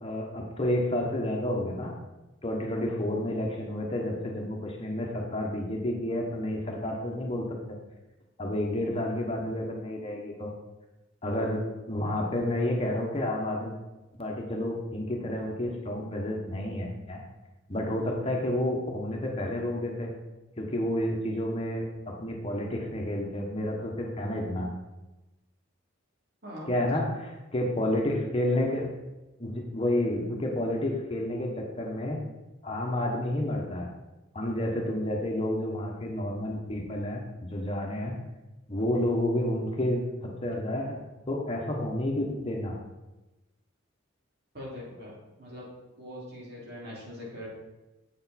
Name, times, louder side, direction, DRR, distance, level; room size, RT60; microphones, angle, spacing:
voice 1, 0.0-2.0 2.4-7.5 8.4-10.5 11.2-13.7 14.2-17.2 17.7-20.1 20.6-24.7 26.7-27.1 27.5-28.9 29.4-32.2 32.6-33.9 34.3-37.2 37.5-38.1 38.7-41.0 41.3-42.8, left 1 dB, 30° left, 0 dB, 1.1 m, -30 dB
voice 2, 26.4-27.0 44.5-45.7 46.0-47.5, equal, 55° right, -5 dB, 2.8 m, -42 dB
7.8 x 6.8 x 4.2 m, 1.1 s
head